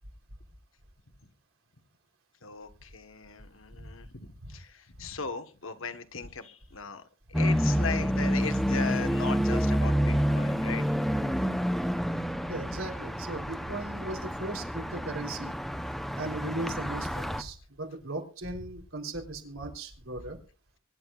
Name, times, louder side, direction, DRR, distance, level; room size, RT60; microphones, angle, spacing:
voice 1, 2.4-7.0 7.3-10.8, left 5 dB, 75° left, 9 dB, 1.4 m, -38 dB
sound 1, 7.3-17.4, equal, ahead, 0.8 m, -28 dB
voice 2, 11.2-11.5 12.5-15.5 16.2-20.4, right 2 dB, 85° right, 3 dB, 3.8 m, -38 dB
24.5 x 11.5 x 2.5 m, 0.37 s
head